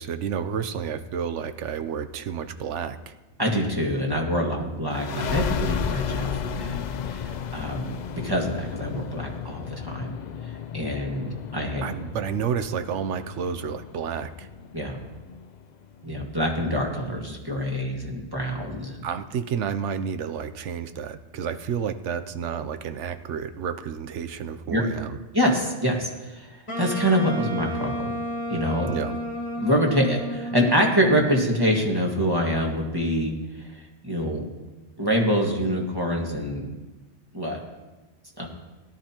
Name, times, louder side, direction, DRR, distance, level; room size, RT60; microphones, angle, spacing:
voice 1, 0.0-3.1 4.5-4.6 11.8-14.5 19.0-25.2 28.9-29.2, right 7 dB, 80° right, 10 dB, 1.0 m, -30 dB
voice 2, 3.4-10.2 10.4-11.9 14.7-15.0 16.0-19.1 24.7-24.8 25.3-28.2 28.5-28.9 29.6-34.4 35.0-36.7 37.3-37.6 38.4-38.5, equal, 20° right, -1 dB, 1.6 m, -25 dB
sound 1, 4.9-16.2, left 8 dB, 60° left, 0.5 m, -33 dB
Wind instrument woodwind instrument, 26.7-31.7, equal, 25° left, 1.6 m, -32 dB
17.5 x 11.5 x 2.9 m, 1.1 s
omnidirectional pair, 1.2 m